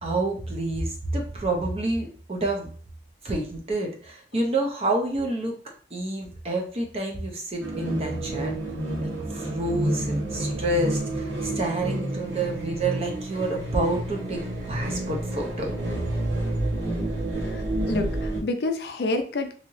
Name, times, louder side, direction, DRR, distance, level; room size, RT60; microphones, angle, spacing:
voice 1, 0.0-2.7 3.2-5.6 5.9-8.5 9.0-14.4 14.7-15.8, right 2 dB, 35° right, 1 dB, 0.6 m, -28 dB
sound 1, 7.6-18.4, right 1 dB, 90° right, 1.2 m, -29 dB
voice 2, 17.4-19.6, left 2 dB, 65° left, 5 dB, 0.4 m, -29 dB
3.1 x 2.8 x 2.6 m, 0.42 s
head